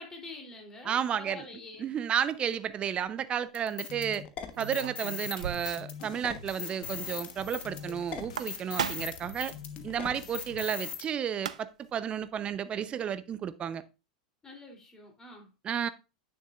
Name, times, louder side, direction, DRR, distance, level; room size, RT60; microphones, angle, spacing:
voice 1, 0.0-1.9 14.4-15.5, left 2 dB, 20° left, 3.2 m, -46 dB
voice 2, 0.8-1.4 1.8-4.2 4.6-9.5 9.8-13.8 15.6-15.9, right 8 dB, 30° right, 0.7 m, -32 dB
sound 1, 2.7-3.0 4.5-5.9 6.2-6.3 6.6-6.7 8.1-9.3 11.0-11.1 11.3-11.9, right 8 dB, 80° right, 0.5 m, -37 dB
sound 2, 3.5-11.0, left 7 dB, 40° left, 1.2 m, -40 dB
sound 3, 5.5-10.6, left 4 dB, 80° left, 1.3 m, -49 dB
9.2 x 6.7 x 2.5 m
hypercardioid pair, 95°, 4 cm